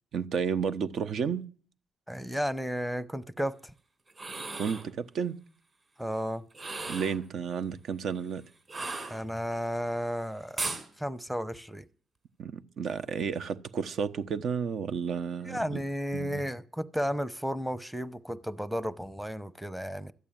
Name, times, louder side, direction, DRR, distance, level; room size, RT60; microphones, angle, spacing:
voice 1, 0.1-1.4 4.6-5.3 6.9-8.4 12.4-15.8 16.1-16.4, right 6 dB, 65° right, 1.0 m, -32 dB
voice 2, 2.1-3.7 6.0-6.4 9.1-10.7 11.0-11.8 15.5-20.1, equal, 5° right, 0.9 m, -33 dB
sound 1, 4.1-4.9 6.5-7.2 8.7-9.6 10.6-10.9, right 3 dB, 35° right, 4.3 m, -36 dB
13.5 x 8.4 x 9.2 m
cardioid pair, 90°, 0 cm